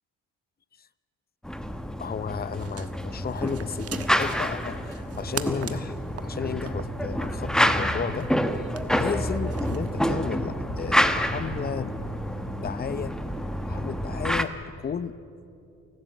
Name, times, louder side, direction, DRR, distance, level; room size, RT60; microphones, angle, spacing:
sound 1, 1.4-14.4, equal, ahead, 1.1 m, -28 dB
voice 1, 2.0-5.9 6.2-8.3 8.9-12.1 12.5-13.2 13.7-15.2, left 7 dB, 30° left, 16 dB, 0.7 m, -33 dB
sound 2, 2.4-10.0, right 8 dB, 50° right, 1.3 m, -43 dB
sound 3, 5.1-12.7, right 9 dB, 75° right, 1.2 m, -44 dB
28.5 x 12.5 x 8.4 m, 2.9 s
cardioid pair, 90°, 30 cm